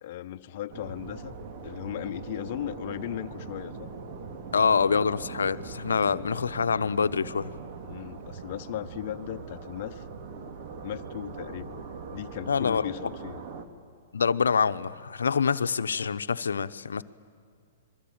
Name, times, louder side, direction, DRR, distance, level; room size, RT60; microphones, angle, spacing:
voice 1, 0.0-1.3 1.6-3.9 7.8-10.1 10.8-11.8 12.1-13.4, left 12 dB, 50° left, 12 dB, 0.9 m, -37 dB
sound 1, 0.7-13.6, right 5 dB, 45° right, 2.7 m, -41 dB
voice 2, 4.5-7.5 12.5-12.9 14.1-17.0, left 6 dB, 85° left, 11 dB, 0.9 m, -25 dB
27.0 x 23.0 x 8.8 m, 2.2 s
hypercardioid pair, 125°, 0 cm